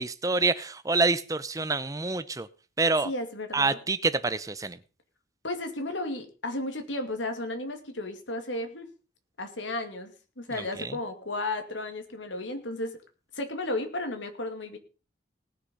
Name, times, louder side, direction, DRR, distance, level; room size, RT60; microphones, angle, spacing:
voice 1, 0.0-2.5 2.8-3.1 3.5-4.8 10.8-10.9, right 3 dB, 20° right, 14 dB, 0.7 m, -27 dB
voice 2, 3.0-3.8 5.4-8.9 9.4-12.9 13.3-14.8, left 2 dB, 80° left, 6 dB, 2.4 m, -34 dB
19.0 x 6.9 x 5.4 m, 0.35 s
head